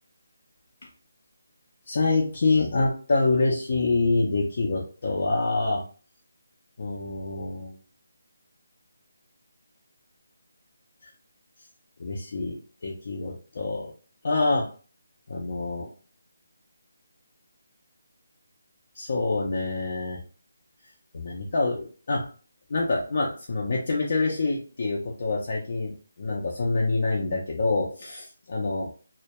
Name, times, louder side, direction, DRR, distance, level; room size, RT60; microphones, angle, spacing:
voice 1, 1.9-5.8 6.8-7.7 12.0-13.9 14.2-14.7 15.3-15.9 19.0-20.2 21.1-22.2 22.7-25.9 26.2-28.9, left 3 dB, 50° left, -3 dB, 0.5 m, -26 dB
2.1 x 2.1 x 2.9 m, 0.39 s
figure-of-eight pair, 165°, 0 cm